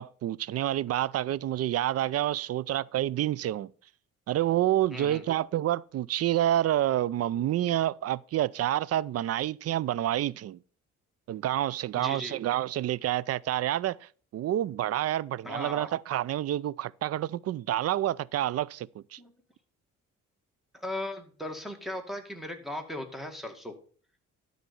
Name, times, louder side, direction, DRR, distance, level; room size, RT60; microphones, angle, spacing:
voice 1, 0.0-3.7 4.3-10.6 11.3-19.2, right 12 dB, 55° right, 0.4 m, -28 dB
voice 2, 4.9-5.2 12.0-12.4 15.4-15.9 19.2-19.3 20.7-23.7, left 1 dB, ahead, 2.0 m, -37 dB
12.0 x 4.1 x 6.9 m
cardioid pair, 90°, 30 cm